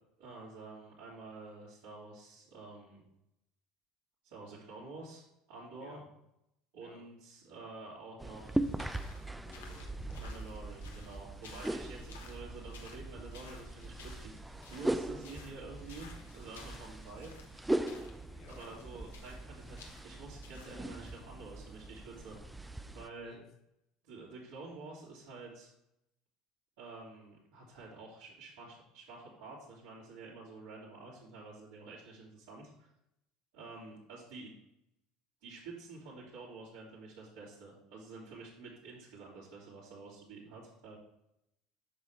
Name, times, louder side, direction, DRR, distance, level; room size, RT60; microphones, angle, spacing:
voice 1, 0.2-3.0 4.2-6.0 6.7-8.7 10.2-14.3 14.6-17.3 18.5-22.4 22.9-23.3 24.1-25.7 26.8-32.9 33.5-34.5 35.4-41.0, right 3 dB, 75° right, -10 dB, 2.7 m, -49 dB
sound 1, 8.2-23.1, right 1 dB, 10° right, 0.5 m, -40 dB
sound 2, 8.5-21.3, left 5 dB, 85° left, 1.0 m, -56 dB
voice 2, 9.4-10.4 18.3-18.9 23.2-23.4, left 4 dB, 55° left, 1 dB, 1.7 m, -57 dB
7.8 x 5.6 x 3.5 m, 0.82 s
hypercardioid pair, 75°, 0 cm